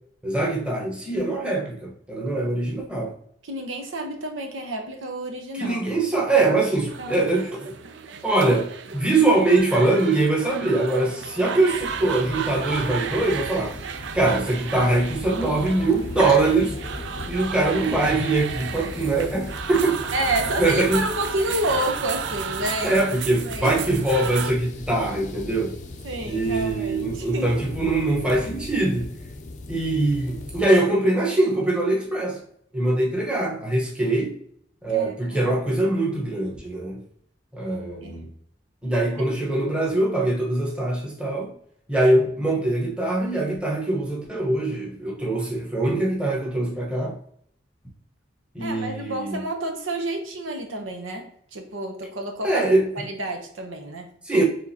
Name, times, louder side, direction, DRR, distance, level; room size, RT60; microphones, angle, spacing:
voice 1, 0.2-3.1 5.5-7.7 8.2-8.6 8.9-13.8 14.1-16.7 17.3-20.0 20.6-21.1 22.8-25.7 26.3-29.1 29.7-32.4 32.7-34.4 34.8-37.0 37.5-38.3 38.8-41.5 41.9-47.1 48.5-49.4 52.4-52.9 54.2-54.4, right 2 dB, 5° right, -3 dB, 1.1 m, -22 dB
voice 2, 3.4-5.8 7.0-7.4 8.3-8.4 16.2-16.4 20.1-23.0 23.4-24.0 26.0-27.5 34.9-35.4 38.0-38.3 48.6-54.1, right 1 dB, 85° right, 3 dB, 0.9 m, -29 dB
sound 1, 6.9-24.5, right 7 dB, 65° right, 0.4 m, -34 dB
sound 2, 11.7-30.7, left 2 dB, 40° left, 0.5 m, -38 dB
4.8 x 3.7 x 2.8 m, 0.64 s
head